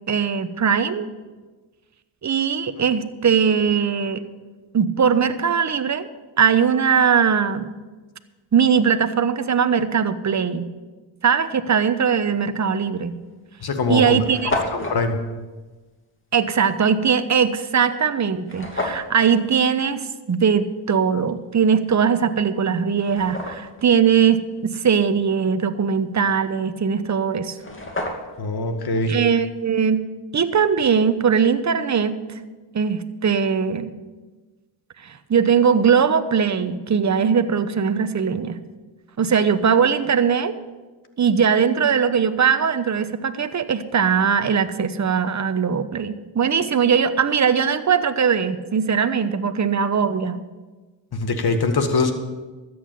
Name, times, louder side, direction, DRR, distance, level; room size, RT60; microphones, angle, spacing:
voice 1, 0.1-1.1 2.2-4.2 4.7-6.1 6.4-7.7 8.5-10.7 11.2-13.2 13.9-14.6 16.3-27.6 29.1-30.0 30.3-32.2 32.7-33.9 35.0-38.6 39.2-40.6 41.2-50.4, right 7 dB, 35° right, 11 dB, 1.0 m, -20 dB
sound 1, 12.7-12.8 13.6-13.7 13.8-13.9 14.1-15.0 18.5-19.1 22.0-22.1 22.7-23.8 27.2-27.3 27.5-28.5, left 2 dB, 25° left, 2.6 m, -29 dB
voice 2, 13.6-14.2 14.7-15.2 28.4-29.2 51.1-52.1, left 3 dB, 50° left, 7 dB, 2.0 m, -22 dB
13.0 x 8.8 x 7.0 m, 1.3 s
cardioid pair, 70°, 50 cm